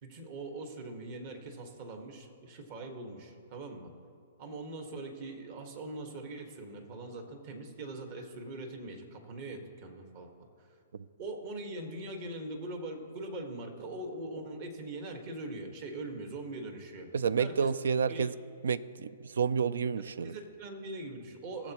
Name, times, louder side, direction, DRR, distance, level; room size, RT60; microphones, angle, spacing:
voice 1, 0.0-3.9 4.4-10.5 11.2-17.1 17.4-17.7 18.1-18.3 20.2-21.7, right 2 dB, 50° right, 4 dB, 1.6 m, -42 dB
voice 2, 17.1-18.3 18.6-19.1 19.4-20.3, right 6 dB, 80° right, 17 dB, 0.4 m, -29 dB
19.5 x 7.3 x 3.0 m, 2.4 s
hypercardioid pair, 135°, 0 cm